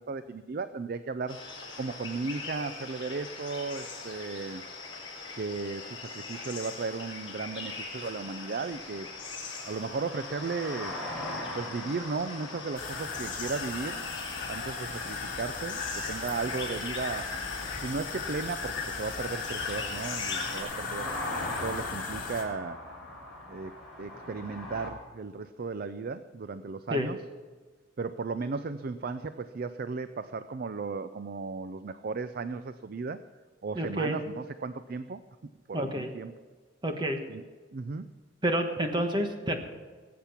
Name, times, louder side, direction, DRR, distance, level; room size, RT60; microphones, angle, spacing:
voice 1, 0.0-1.4 1.8-4.6 5.4-9.1 9.7-10.9 11.5-14.0 14.5-17.3 17.8-21.1 21.6-22.8 23.5-27.2 28.0-33.2 33.6-35.2 35.7-36.3 37.3-37.4 37.7-38.1, right 4 dB, 50° right, 12 dB, 0.4 m, -35 dB
sound 1, 1.3-20.6, left 4 dB, 25° left, 4.3 m, -41 dB
sound 2, 7.6-24.9, left 1 dB, ahead, 3.9 m, -42 dB
sound 3, 12.8-22.4, left 5 dB, 45° left, 2.9 m, -37 dB
voice 2, 33.7-34.2 35.7-36.1 36.8-37.2 38.4-39.6, equal, 25° right, 5 dB, 1.3 m, -29 dB
20.0 x 8.6 x 5.9 m, 1.4 s
head